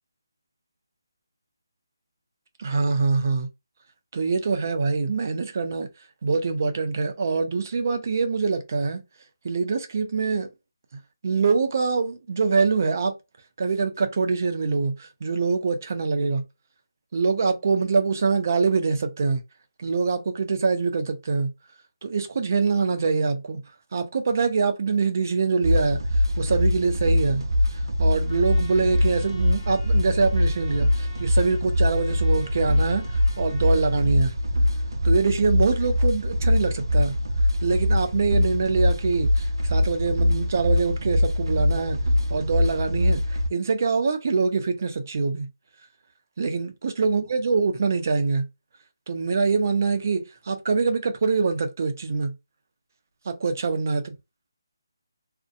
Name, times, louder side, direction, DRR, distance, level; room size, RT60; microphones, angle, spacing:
voice 1, 2.6-3.5 4.1-5.9 6.2-9.0 9.4-10.5 11.2-13.1 13.6-16.4 17.1-19.4 19.8-21.5 22.0-23.6 23.9-26.0 26.4-27.4 28.0-33.1 33.4-34.3 35.0-37.1 37.6-42.0 42.3-45.5 46.4-48.5 49.1-52.3 53.3-54.1, right 4 dB, 40° right, 0.5 m, -24 dB
sound 1, 25.6-43.5, left 1 dB, 85° right, 0.6 m, -23 dB
Trumpet, 28.2-34.0, equal, 5° left, 0.8 m, -49 dB
2.6 x 2.1 x 2.4 m
hypercardioid pair, 170°, 2 cm